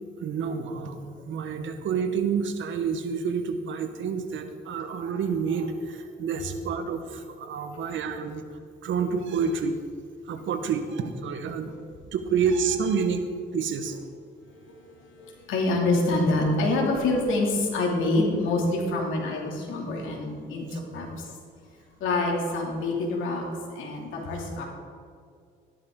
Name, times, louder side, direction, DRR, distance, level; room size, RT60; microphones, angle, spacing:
voice 1, 0.2-8.4 8.8-9.8 10.3-11.7 12.1-13.3 13.5-14.0 20.7-20.8, right 6 dB, 75° right, 8 dB, 1.2 m, -28 dB
voice 2, 15.2-21.2 22.0-23.4 23.7-24.7, left 2 dB, 85° left, -1 dB, 2.6 m, -26 dB
13.5 x 11.5 x 3.8 m, 2.2 s
cardioid pair, 90°, 20 cm